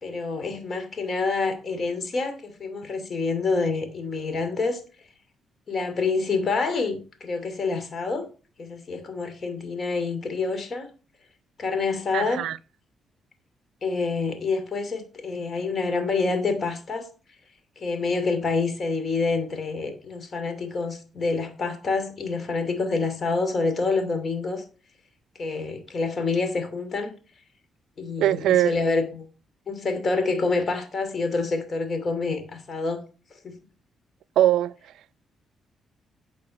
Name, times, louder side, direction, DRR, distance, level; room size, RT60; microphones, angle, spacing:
voice 1, 0.0-5.1 5.7-8.3 8.6-10.9 11.6-12.4 13.8-17.1 17.8-24.6 25.3-27.1 28.0-29.2 29.7-33.0 33.3-33.6, left 4 dB, 50° left, 2.6 m, -27 dB
voice 2, 12.1-12.6 28.2-28.7 34.4-34.7, right 12 dB, 80° right, 0.4 m, -21 dB
9.3 x 5.3 x 5.8 m
supercardioid pair, 60°, 0 cm